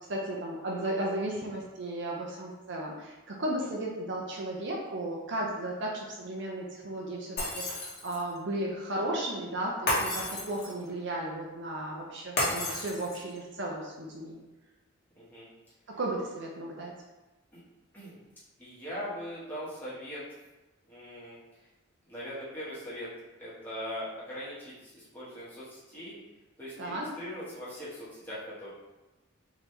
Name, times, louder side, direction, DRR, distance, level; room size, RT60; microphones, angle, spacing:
voice 1, 0.1-14.4 15.9-16.9 26.8-27.1, right 1 dB, 55° right, -2 dB, 0.6 m, -35 dB
Shatter, 7.4-8.3 9.9-10.9 12.4-13.4, left 1 dB, 50° left, 1.1 m, -31 dB
voice 2, 15.2-15.5 17.5-17.6 17.9-18.2 18.6-20.2 20.9-21.4 22.1-23.1 23.4-26.2 26.6-28.7, equal, 10° left, -11 dB, 1.3 m, -40 dB
3.8 x 3.0 x 3.2 m, 1.1 s
head